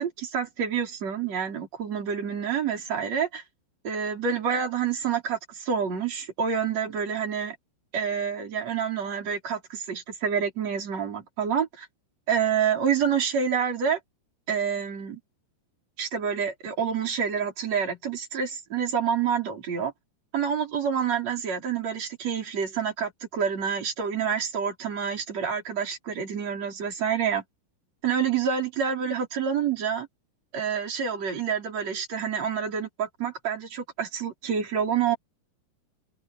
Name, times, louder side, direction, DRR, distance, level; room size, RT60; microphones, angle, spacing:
voice 1, 0.0-3.4 3.8-7.6 7.9-11.9 12.3-14.0 14.5-15.2 16.0-19.9 20.3-27.4 28.0-30.1 30.5-35.2, right 7 dB, 35° right, 6.3 m, -28 dB
omnidirectional pair, 5.2 m